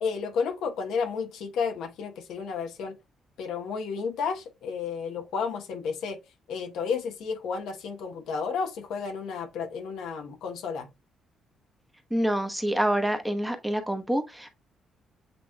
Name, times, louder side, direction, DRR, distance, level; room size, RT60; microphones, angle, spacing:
voice 1, 0.0-2.9 3.4-6.2 6.5-10.9, left 5 dB, 85° left, 1.0 m, -32 dB
voice 2, 12.1-14.5, right 1 dB, 5° right, 1.0 m, -27 dB
7.9 x 3.0 x 2.2 m
cardioid pair, 90°, 0 cm